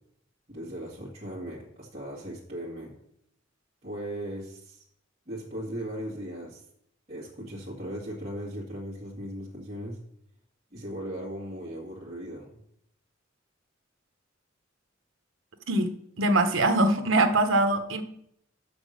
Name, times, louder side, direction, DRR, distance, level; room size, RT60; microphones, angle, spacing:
voice 1, 0.5-2.9 3.8-4.8 5.3-6.6 7.1-10.0 10.7-12.6, right 1 dB, 35° right, -6 dB, 2.0 m, -38 dB
voice 2, 16.2-18.0, right 2 dB, 75° right, 7 dB, 1.1 m, -22 dB
7.4 x 6.1 x 6.5 m, 0.73 s
head